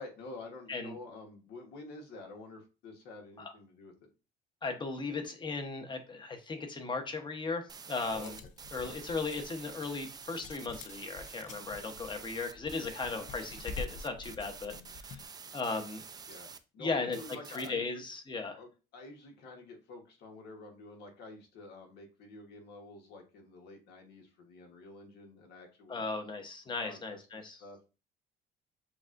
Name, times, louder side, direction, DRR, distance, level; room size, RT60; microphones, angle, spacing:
voice 1, 0.0-4.1 8.1-8.3 8.8-9.0 13.1-13.3 16.3-18.0 18.6-26.0 26.8-27.8, left 3 dB, 80° left, 2 dB, 1.3 m, -49 dB
voice 2, 4.6-8.4 8.7-16.0 16.8-17.2 17.5-18.6 25.9-27.6, left 4 dB, 25° left, 6 dB, 0.9 m, -37 dB
sound 1, 7.7-16.6 17.1-17.7, right 5 dB, 25° right, 0.4 m, -48 dB
sound 2, 8.0-15.3, left 4 dB, 45° left, 0.5 m, -47 dB
6.9 x 2.4 x 2.5 m, 0.32 s
cardioid pair, 110°, 17 cm